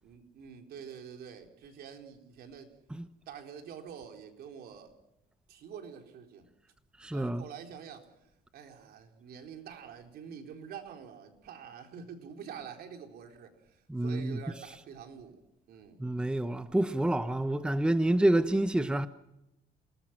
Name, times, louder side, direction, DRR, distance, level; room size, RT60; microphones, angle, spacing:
voice 1, 0.0-2.8 3.3-4.9 5.5-6.5 7.1-8.1 8.5-15.4 15.7-16.0, right 7 dB, 70° right, 4.1 m, -47 dB
voice 2, 7.0-7.4 13.9-14.4 16.0-19.1, right 1 dB, 5° right, 0.9 m, -28 dB
28.0 x 20.0 x 6.0 m
cardioid pair, 110°, 17 cm